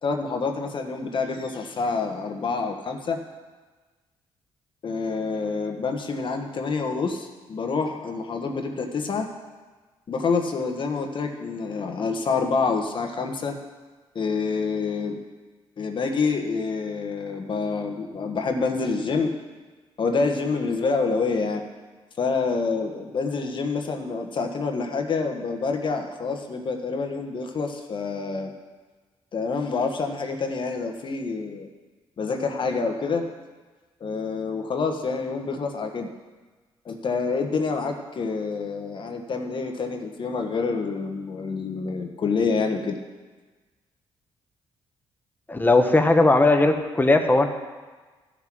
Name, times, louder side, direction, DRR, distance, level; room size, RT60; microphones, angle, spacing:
voice 1, 0.0-3.2 4.8-9.3 10.1-13.6 14.1-15.2 15.8-19.3 20.0-21.6 22.2-28.5 29.3-31.7 32.2-33.3 34.0-36.1 36.8-43.0, left 4 dB, 50° left, 4 dB, 1.3 m, -27 dB
voice 2, 45.5-47.5, left 2 dB, 20° left, 6 dB, 1.2 m, -18 dB
14.0 x 6.2 x 6.1 m, 1.3 s
cardioid pair, 80°, 10 cm